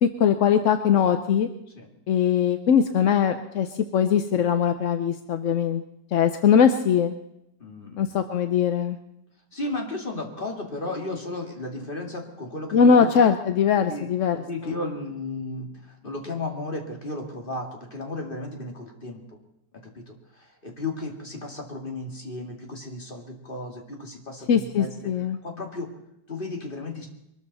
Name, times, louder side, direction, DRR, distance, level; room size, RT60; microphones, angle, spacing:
voice 1, 0.0-1.5 2.1-3.7 3.9-5.8 6.1-7.1 8.0-9.0 12.7-14.4 24.5-25.4, left 7 dB, 60° left, 8 dB, 0.8 m, -21 dB
voice 2, 7.6-8.1 9.5-13.3 13.9-19.4 19.7-25.1 25.4-25.9 26.3-27.1, left 2 dB, 30° left, 2 dB, 2.4 m, -34 dB
23.0 x 13.5 x 4.1 m, 0.82 s
omnidirectional pair, 2.0 m